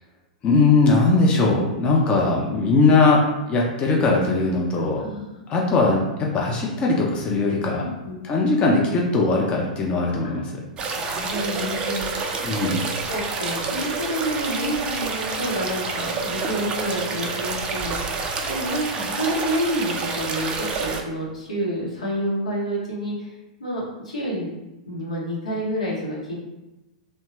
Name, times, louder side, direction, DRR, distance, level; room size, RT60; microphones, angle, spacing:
voice 1, 0.4-3.2 3.5-5.0 5.5-7.8 8.2-10.4 12.4-12.8, left 3 dB, 30° left, -2 dB, 0.6 m, -20 dB
voice 2, 7.8-8.2 10.9-12.7 13.1-23.3 23.6-24.5 24.9-26.3, equal, 85° left, -5 dB, 0.9 m, -29 dB
sound 1, 10.8-21.0, right 4 dB, 25° right, 0.4 m, -28 dB
2.7 x 2.2 x 3.1 m, 1.0 s
figure-of-eight pair, 100°, 4 cm